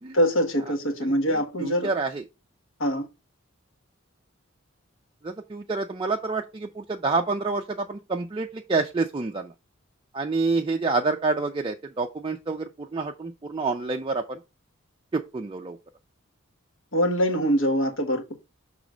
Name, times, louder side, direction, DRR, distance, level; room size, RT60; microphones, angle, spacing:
voice 1, 0.1-1.9 2.8-3.1 16.9-18.3, equal, 65° left, 1.3 m, -24 dB
voice 2, 1.0-2.2 5.2-9.5 10.1-14.4 15.1-15.8, right 3 dB, 25° right, 0.4 m, -28 dB
6.2 x 3.1 x 5.0 m
head